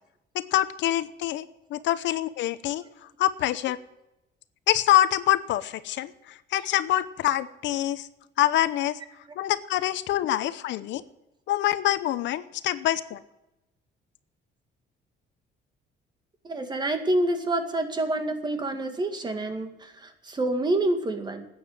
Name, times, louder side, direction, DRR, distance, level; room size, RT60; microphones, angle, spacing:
voice 1, 0.3-2.8 3.2-3.8 4.7-8.1 8.4-9.0 9.4-11.0 11.5-13.2, left 13 dB, 80° left, 15 dB, 0.8 m, -25 dB
voice 2, 16.4-21.5, right 1 dB, 25° right, 7 dB, 2.1 m, -27 dB
13.0 x 9.1 x 9.0 m, 0.91 s
cardioid pair, 140°, 18 cm